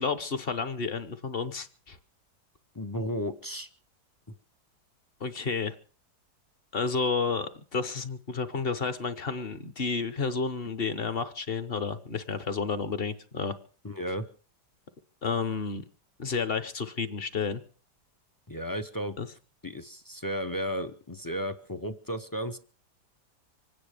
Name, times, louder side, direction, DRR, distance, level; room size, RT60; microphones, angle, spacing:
voice 1, 0.0-2.0 5.2-5.8 6.7-13.6 15.2-15.8 16.2-17.6 19.2-19.3, left 5 dB, 40° left, 11 dB, 1.0 m, -31 dB
voice 2, 2.7-3.7 13.8-14.3 18.5-19.2 19.6-22.6, equal, 25° left, 11 dB, 0.4 m, -34 dB
25.5 x 9.6 x 5.0 m, 0.40 s
omnidirectional pair, 1.8 m